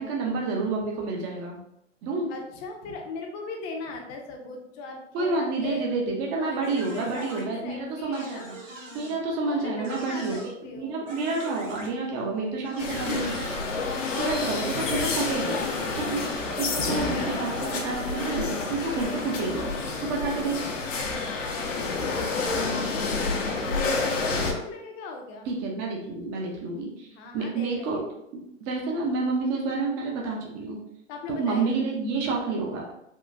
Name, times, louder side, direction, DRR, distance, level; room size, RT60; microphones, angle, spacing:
voice 1, 0.0-1.5 2.0-2.3 5.1-8.5 8.9-13.3 14.2-15.6 16.0-16.3 16.6-19.7 20.0-20.6 25.5-27.1 27.3-28.0 28.3-30.8 31.3-32.9, right 3 dB, 30° right, -1 dB, 0.7 m, -29 dB
voice 2, 2.3-5.9 6.3-8.5 9.4-11.0 14.3-16.3 21.1-25.5 27.1-28.1 31.1-32.0, left 3 dB, 30° left, 2 dB, 0.6 m, -39 dB
sound 1, 6.6-7.4 8.1-9.2 9.8-10.5 11.1-11.9 12.6-13.6 14.9-15.3, right 1 dB, 85° right, 1.1 m, -41 dB
sound 2, 12.8-24.5, left 3 dB, 80° left, 0.8 m, -29 dB
3.6 x 2.3 x 2.6 m, 0.78 s
hypercardioid pair, 125°, 37 cm